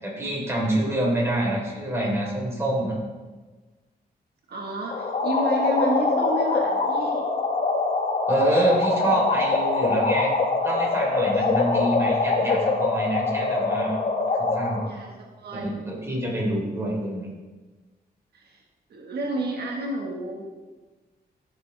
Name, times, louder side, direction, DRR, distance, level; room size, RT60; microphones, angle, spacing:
voice 1, 0.0-3.0 8.3-10.3 10.6-14.0 14.3-14.9 15.5-17.3, right 1 dB, 15° right, -4 dB, 3.5 m, -26 dB
voice 2, 4.5-7.2 14.8-15.7 18.3-18.6 18.9-20.5, right 1 dB, 75° right, 0 dB, 1.4 m, -30 dB
sound 1, 4.9-14.9, left 3 dB, 40° left, 1.0 m, -24 dB
14.0 x 6.9 x 3.3 m, 1.3 s
wide cardioid pair, 115°, 17 cm